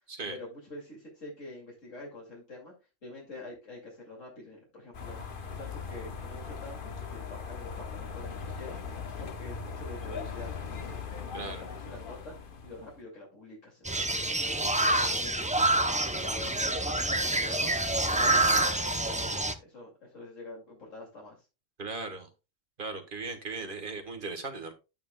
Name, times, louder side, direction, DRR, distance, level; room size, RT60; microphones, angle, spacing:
voice 1, 0.3-2.7 3.0-10.5 10.8-11.0 11.3-12.3 12.6-14.3 14.8-17.9 18.2-19.2 19.6-21.5, left 2 dB, 75° left, -3 dB, 2.9 m, -46 dB
sound 1, 4.9-13.0, left 5 dB, 45° left, 1.0 m, -39 dB
sound 2, 13.8-19.5, right 2 dB, 10° right, 0.3 m, -27 dB
voice 2, 21.8-22.3 22.8-24.7, right 3 dB, 40° right, 7 dB, 1.5 m, -37 dB
9.6 x 9.0 x 2.2 m, 0.28 s
omnidirectional pair, 1.3 m